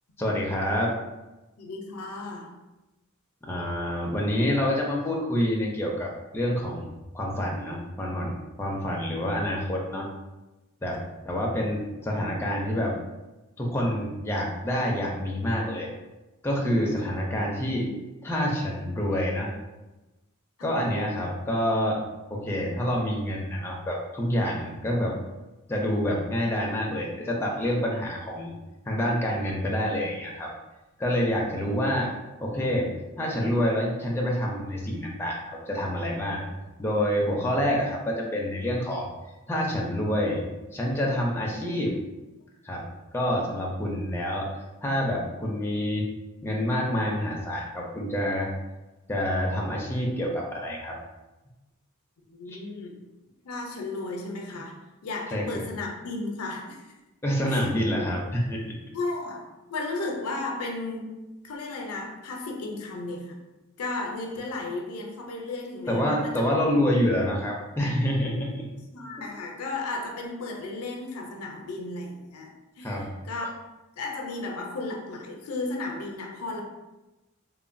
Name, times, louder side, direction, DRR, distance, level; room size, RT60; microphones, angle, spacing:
voice 1, 0.2-0.9 3.4-10.1 10.8-13.0 13.6-15.9 16.4-17.9 18.2-19.5 20.6-22.0 22.3-25.2 25.7-28.5 28.8-30.5 31.0-32.1 32.4-36.5 36.8-39.1 39.5-42.0 42.6-42.9 43.1-44.5 44.8-46.1 46.4-48.5 49.1-51.0 52.5-52.6 55.3-55.6 57.2-58.8 65.9-68.7 72.8-73.1, equal, 10° left, -2 dB, 0.4 m, -27 dB
voice 2, 1.6-2.5 6.0-6.1 20.6-20.7 52.3-53.0 53.4-54.8 55.0-56.9 57.5-58.0 58.9-61.2 61.4-63.4 63.8-66.5 68.9-73.0 73.2-73.5 74.0-76.6, left 2 dB, 90° left, 1 dB, 0.5 m, -34 dB
3.0 x 2.1 x 2.5 m, 1.0 s
head